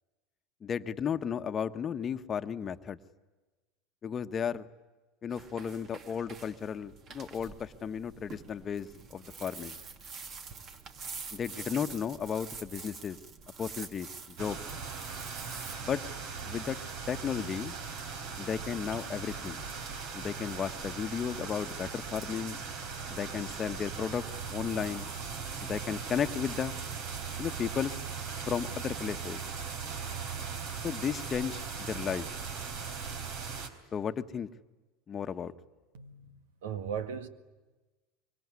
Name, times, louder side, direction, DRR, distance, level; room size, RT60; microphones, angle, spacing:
voice 1, 0.6-3.0 4.0-4.6 5.2-9.8 11.3-13.2 13.6-14.6 15.8-16.0 16.5-16.8 17.1-17.8 18.4-19.6 20.1-22.6 23.1-25.1 25.6-26.8 27.4-28.0 28.5-29.4 30.8-32.3 33.9-34.5 35.1-35.5, left 7 dB, 30° left, 1.3 m, -34 dB
sound 1, 5.3-15.8, right 5 dB, 45° right, 2.4 m, -46 dB
sound 2, 14.4-33.7, right 5 dB, 65° right, 4.0 m, -39 dB
voice 2, 35.9-37.3, right 7 dB, 80° right, 1.9 m, -38 dB
25.0 x 24.0 x 9.8 m
hypercardioid pair, 95°, 0 cm